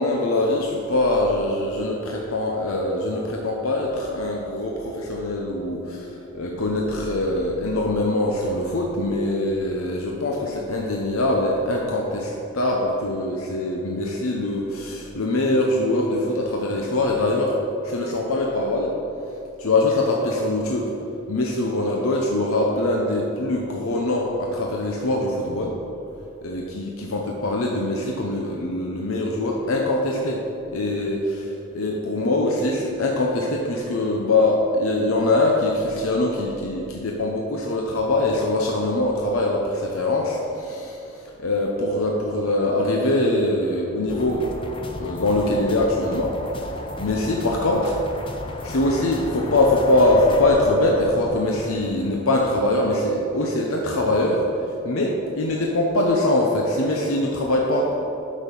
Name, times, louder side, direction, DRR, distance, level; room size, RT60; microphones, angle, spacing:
voice 1, 0.0-17.6 17.8-18.9 19.6-20.9 21.3-25.7 26.4-30.4 30.7-31.5 31.7-44.5 45.0-46.4 47.0-47.9 48.6-54.4 54.8-58.0, left 2 dB, 70° left, -1 dB, 0.8 m, -23 dB
sound 1, 44.1-51.9, left 1 dB, 25° left, 0.5 m, -34 dB
8.3 x 6.2 x 5.4 m, 3.0 s
head